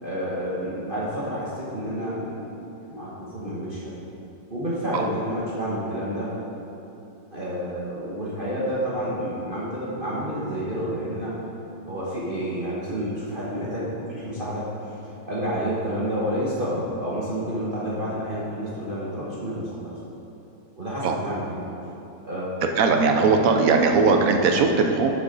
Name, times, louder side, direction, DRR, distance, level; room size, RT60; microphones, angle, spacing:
voice 1, 0.0-2.5 2.9-3.9 4.5-6.3 7.3-11.3 11.9-19.9 20.8-21.4 22.2-22.6 23.1-23.3 23.5-23.7, equal, 30° right, -8 dB, 1.3 m, -29 dB
voice 2, 22.8-25.1, right 4 dB, 60° right, 4 dB, 1.0 m, -19 dB
11.0 x 7.0 x 3.9 m, 2.9 s
omnidirectional pair, 2.0 m